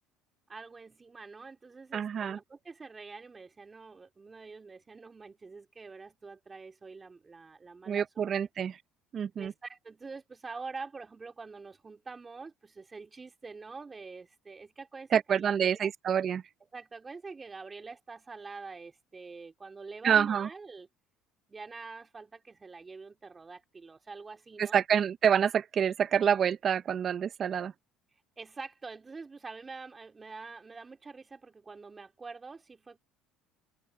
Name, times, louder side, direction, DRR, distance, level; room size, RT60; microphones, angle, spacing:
voice 1, 0.5-8.5 9.4-15.9 16.6-20.9 21.5-24.8 28.4-33.0, right 4 dB, 25° right, 3.3 m, -46 dB
voice 2, 1.9-2.4 7.9-8.8 9.1-9.5 15.1-16.4 20.0-20.5 24.6-27.7, right 8 dB, 45° right, 0.5 m, -27 dB
supercardioid pair, 100°, 0 cm